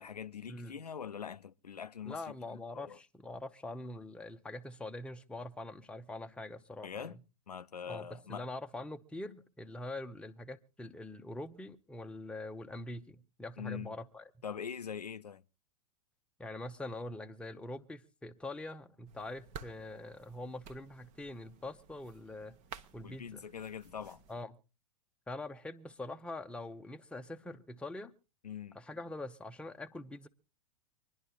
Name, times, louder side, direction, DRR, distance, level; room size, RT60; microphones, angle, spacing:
voice 1, 0.0-3.0 6.8-7.2 7.5-8.5 13.6-13.9 14.4-15.4 23.0-24.2 28.4-28.8, left 7 dB, 85° left, 0.5 m, -43 dB
voice 2, 2.0-7.2 7.9-14.2 16.4-22.6 22.9-23.4 24.3-24.6 25.3-28.1 28.7-30.3, left 2 dB, 5° left, 0.8 m, -44 dB
sound 1, 19.1-24.4, right 6 dB, 40° right, 1.0 m, -53 dB
25.5 x 11.0 x 2.3 m
figure-of-eight pair, 95°, 20 cm